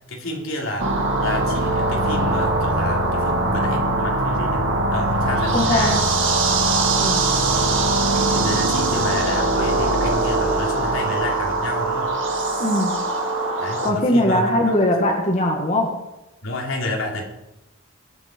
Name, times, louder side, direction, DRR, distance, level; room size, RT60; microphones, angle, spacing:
voice 1, 0.1-0.9 1.2-4.6 4.9-6.0 7.5-7.8 8.1-12.1 13.6-14.5 16.4-17.2, left 1 dB, 85° left, 0 dB, 3.1 m, -29 dB
sound 1, 0.8-13.9, right 2 dB, 65° right, 2.1 m, -21 dB
voice 2, 5.5-6.0 7.0-7.3 12.6-13.0 13.8-15.9, left 1 dB, 35° left, 1 dB, 1.8 m, -20 dB
20.0 x 7.8 x 4.5 m, 0.93 s
head